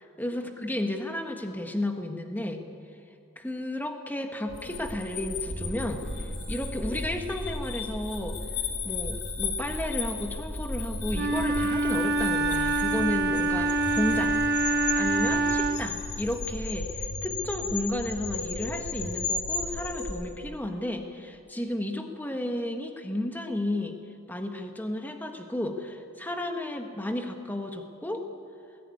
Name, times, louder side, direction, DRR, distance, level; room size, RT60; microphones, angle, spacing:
voice 1, 0.0-2.6 3.4-8.4 8.8-14.4 14.9-24.0 24.3-28.2, left 1 dB, 10° left, 4 dB, 1.4 m, -33 dB
sound 1, 4.5-20.2, left 3 dB, 75° left, 4.0 m, -34 dB
Wind instrument woodwind instrument, 11.1-16.0, right 2 dB, 45° right, 1.1 m, -26 dB
20.5 x 16.0 x 9.6 m, 2.6 s
head